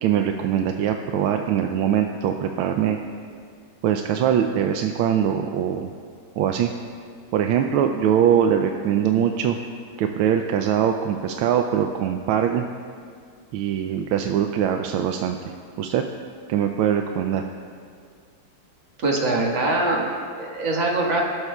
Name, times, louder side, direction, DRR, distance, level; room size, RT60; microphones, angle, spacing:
voice 1, 0.0-3.0 3.8-5.9 6.4-6.7 7.3-9.6 10.0-12.6 13.5-16.0 16.5-17.4, right 9 dB, 85° right, 4 dB, 1.4 m, -22 dB
voice 2, 19.0-21.2, right 2 dB, 65° right, -2 dB, 2.6 m, -23 dB
22.0 x 12.5 x 2.4 m, 2.1 s
omnidirectional pair, 2.3 m